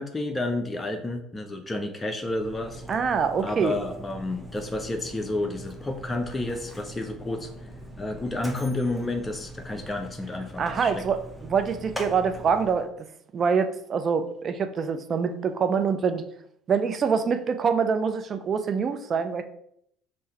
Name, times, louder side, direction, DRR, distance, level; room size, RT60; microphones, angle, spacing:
voice 1, 0.0-2.8 3.4-7.5 8.0-11.0, left 2 dB, 20° left, 4 dB, 0.5 m, -30 dB
Mechanisms, 2.1-12.9, equal, ahead, 0.9 m, -42 dB
voice 2, 2.9-3.7 10.6-12.9 13.3-16.2 16.7-19.4, right 6 dB, 45° right, 8 dB, 0.4 m, -25 dB
3.7 x 2.6 x 4.3 m, 0.71 s
hypercardioid pair, 60°, 0 cm